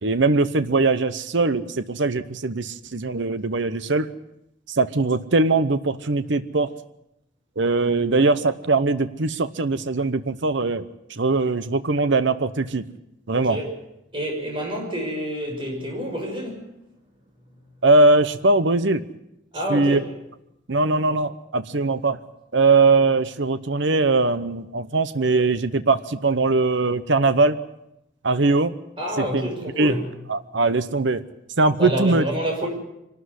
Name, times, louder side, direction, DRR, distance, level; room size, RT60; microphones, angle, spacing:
voice 1, 0.0-4.1 4.7-6.7 7.6-12.8 13.3-13.6 17.8-19.0 19.7-20.0 20.7-22.2 22.5-27.6 28.2-28.7 29.2-29.4 29.8-29.9 30.3-31.2 31.6-32.2, right 3 dB, 65° right, 12 dB, 0.9 m, -21 dB
voice 2, 13.3-13.7 14.1-16.6 19.5-20.1 29.0-30.0 31.8-32.7, equal, 25° right, 1 dB, 6.3 m, -28 dB
24.0 x 12.5 x 9.7 m, 0.84 s
head